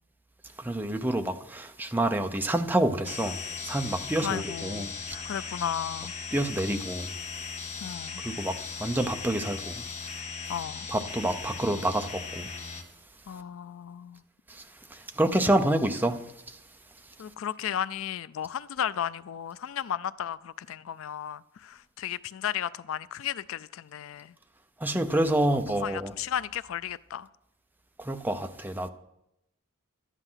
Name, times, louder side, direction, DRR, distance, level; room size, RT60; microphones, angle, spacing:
voice 1, 0.6-4.9 6.3-7.1 8.2-9.8 10.9-12.5 14.5-14.6 14.9-16.2 16.5-16.6 24.8-26.1 28.0-28.9, right 1 dB, 10° right, 0.7 m, -28 dB
sound 1, 3.0-12.8, left 5 dB, 35° left, 1.4 m, -38 dB
voice 2, 4.2-4.8 5.2-6.1 7.8-8.2 10.5-10.9 13.3-14.2 17.2-24.3 25.8-27.3, left 9 dB, 65° left, 0.3 m, -34 dB
12.0 x 10.0 x 5.7 m
head